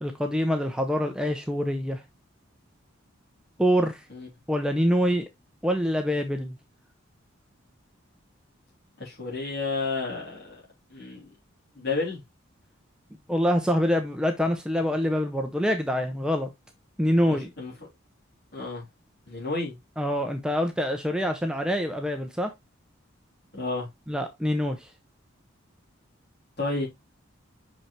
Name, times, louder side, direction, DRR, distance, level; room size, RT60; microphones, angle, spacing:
voice 1, 0.0-2.0 3.6-4.0 4.5-5.2 5.6-6.5 13.3-16.5 17.0-17.5 20.0-22.5 24.1-24.9, equal, 5° right, 0.6 m, -25 dB
voice 2, 9.0-10.6 10.9-11.3 11.7-12.2 17.3-17.9 18.5-18.9 19.3-19.8 23.5-23.9 26.6-26.9, left 3 dB, 50° left, 3.5 m, -31 dB
5.9 x 5.3 x 3.2 m
head